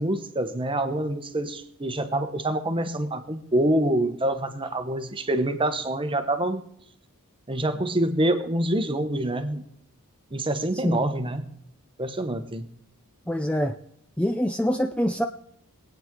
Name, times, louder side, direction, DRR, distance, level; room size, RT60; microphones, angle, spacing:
voice 1, 0.0-6.6 7.5-9.6 10.3-11.4 12.0-12.7, right 1 dB, 25° right, 8 dB, 1.0 m, -26 dB
voice 2, 13.3-13.8 14.2-15.3, equal, 5° left, 6 dB, 0.4 m, -25 dB
23.5 x 9.0 x 3.7 m, 0.72 s
head